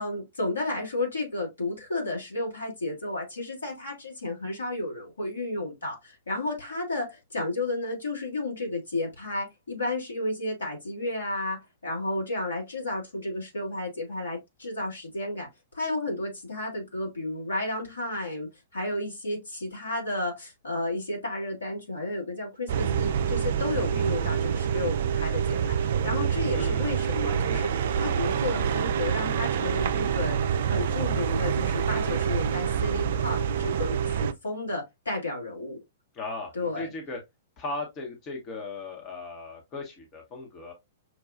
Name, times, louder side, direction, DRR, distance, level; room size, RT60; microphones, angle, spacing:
voice 1, 0.0-15.5 15.7-30.4 30.6-35.8 36.5-36.9, left 2 dB, 70° left, 1.9 m, -32 dB
sound 1, 22.7-34.3, right 8 dB, 55° right, 0.3 m, -26 dB
voice 2, 26.5-26.9 36.1-37.2 37.6-40.7, left 3 dB, 30° left, 0.9 m, -37 dB
6.0 x 2.3 x 2.4 m
figure-of-eight pair, 105°, 0 cm